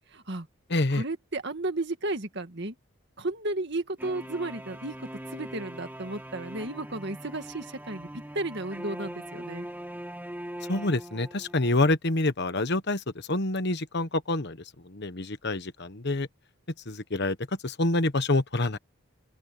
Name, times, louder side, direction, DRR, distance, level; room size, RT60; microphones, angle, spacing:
voice 1, 0.1-0.5 0.9-2.8 3.2-8.1 8.3-9.7, right 2 dB, 50° right, 2.1 m, -33 dB
voice 2, 0.7-1.0 10.7-14.6 14.8-16.3 16.9-17.4 17.6-18.8, left 2 dB, 50° left, 1.2 m, -27 dB
sound 1, 4.0-11.7, right 1 dB, 10° right, 1.2 m, -41 dB
open air
head